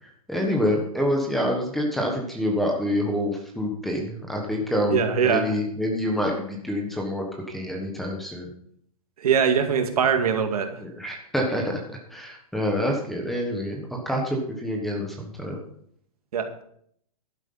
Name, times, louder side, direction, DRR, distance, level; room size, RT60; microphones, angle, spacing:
voice 1, 0.3-8.5 10.8-11.8 12.1-15.6, left 1 dB, ahead, 1 dB, 1.3 m, -27 dB
voice 2, 4.9-5.5 9.2-10.8 16.3-16.6, right 7 dB, 75° right, 6 dB, 2.2 m, -22 dB
11.5 x 9.3 x 5.7 m, 0.67 s
hypercardioid pair, 170°, 19 cm